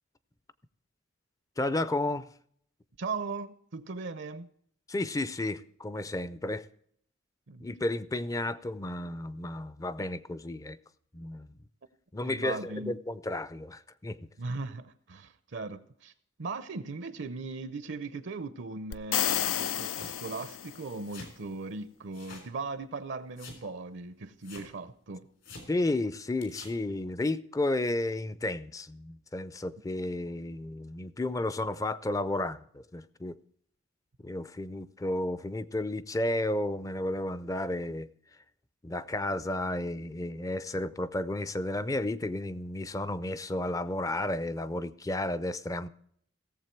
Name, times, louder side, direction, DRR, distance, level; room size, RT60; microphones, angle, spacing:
voice 1, 1.6-2.3 4.9-6.7 7.6-10.8 11.1-11.5 12.1-14.2 25.7-33.4 34.2-38.1 38.8-45.9, left 2 dB, 15° left, 0.5 m, -32 dB
voice 2, 3.0-4.5 7.5-7.7 12.2-13.0 14.4-16.1 16.4-25.3, right 3 dB, 65° right, 0.6 m, -38 dB
sound 1, 18.9-21.0, left 11 dB, 85° left, 0.4 m, -31 dB
sound 2, 19.9-20.2 21.1-21.4 22.1-22.5 22.8-22.9 23.4-23.6 24.4-24.7 25.4-25.7 26.4-26.7, left 3 dB, 70° left, 3.4 m, -46 dB
17.0 x 7.3 x 4.5 m
head